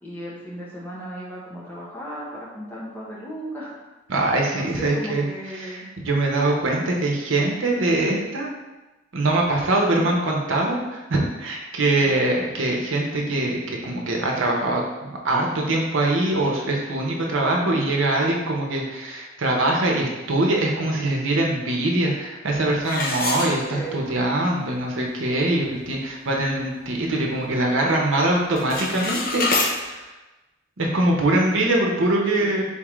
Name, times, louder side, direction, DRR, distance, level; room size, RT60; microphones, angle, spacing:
voice 1, 0.0-3.8 4.5-5.9 9.8-10.1 12.0-12.3 23.7-24.0 31.0-31.5 32.4-32.6, equal, 10° left, -6 dB, 1.0 m, -36 dB
voice 2, 4.1-8.5 9.1-30.0 30.8-32.6, right 2 dB, 80° right, -1 dB, 0.8 m, -23 dB
sound 1, 22.8-24.1 24.6-24.7 25.2-25.3 25.7-26.0 26.5-27.6 27.8-28.2 28.4-29.7, left 3 dB, 45° left, 0.6 m, -27 dB
4.2 x 3.6 x 3.1 m, 1.1 s
head